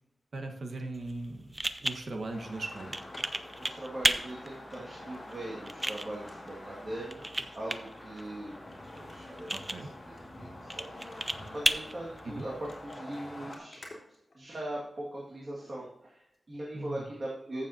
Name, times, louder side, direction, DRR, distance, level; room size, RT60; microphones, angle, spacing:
voice 1, 0.3-3.0 9.5-9.9 12.2-12.4 16.7-17.0, right 2 dB, 65° right, 3 dB, 1.3 m, -39 dB
sound 1, 0.9-13.0, right 1 dB, 15° right, 0.6 m, -36 dB
sound 2, 2.3-13.6, left 1 dB, 30° left, 3.4 m, -47 dB
sound 3, 2.7-4.2 4.7-5.3 5.6-5.7 6.1-6.6 7.3-7.5 8.2-8.3 8.7-8.8 9.1-10.2 10.6-10.8 11.1-11.4 12.2-14.8 15.6-15.8 16.3-16.4, left 2 dB, 45° left, 3.2 m, -53 dB
voice 2, 3.6-7.3 7.5-8.6 8.9-11.3 11.5-13.8 14.3-17.7, right 1 dB, 45° right, -4 dB, 2.0 m, -40 dB
14.5 x 7.2 x 2.8 m, 0.84 s
wide cardioid pair, 115°, 0 cm